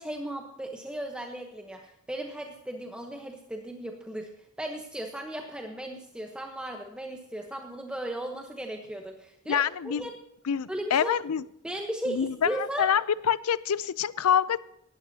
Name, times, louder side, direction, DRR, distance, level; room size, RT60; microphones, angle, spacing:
voice 1, 0.0-4.3 4.6-10.1 10.7-11.2 11.6-12.9, right 1 dB, 5° right, 2 dB, 1.0 m, -36 dB
voice 2, 9.5-10.0 10.4-11.4 12.1-14.6, left 8 dB, 85° left, 18 dB, 0.5 m, -26 dB
18.0 x 12.5 x 2.8 m, 0.77 s
head